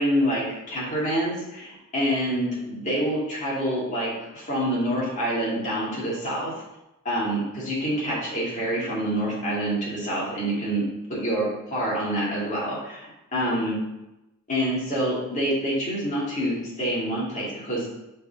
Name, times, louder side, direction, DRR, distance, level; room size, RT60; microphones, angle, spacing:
voice 1, 0.0-6.5 7.0-13.8 14.5-17.9, equal, 35° left, -7 dB, 2.3 m, -27 dB
5.2 x 4.4 x 5.2 m, 0.93 s
head